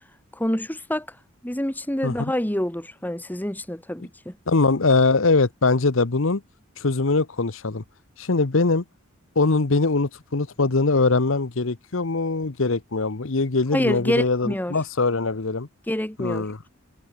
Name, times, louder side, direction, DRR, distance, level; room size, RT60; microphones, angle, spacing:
voice 1, 0.3-1.1 1.4-4.3 13.7-14.7 15.9-16.5, left 1 dB, 10° left, 1.2 m, -27 dB
voice 2, 4.5-6.4 6.8-7.8 8.2-8.8 9.4-15.7 16.2-16.6, left 3 dB, 65° left, 1.0 m, -22 dB
head